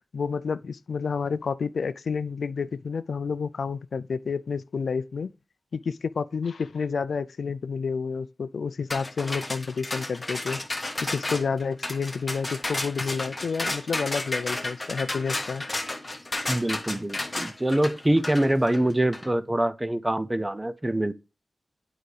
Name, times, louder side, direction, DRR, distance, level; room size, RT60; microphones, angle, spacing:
voice 1, 0.1-5.3 5.7-10.6 11.1-15.6, left 5 dB, 80° left, 0.3 m, -30 dB
sound 1, 8.9-19.3, left 2 dB, 25° left, 1.2 m, -32 dB
voice 2, 16.5-21.1, right 1 dB, 15° right, 0.5 m, -24 dB
9.0 x 4.8 x 3.2 m
wide cardioid pair, 90°, 0 cm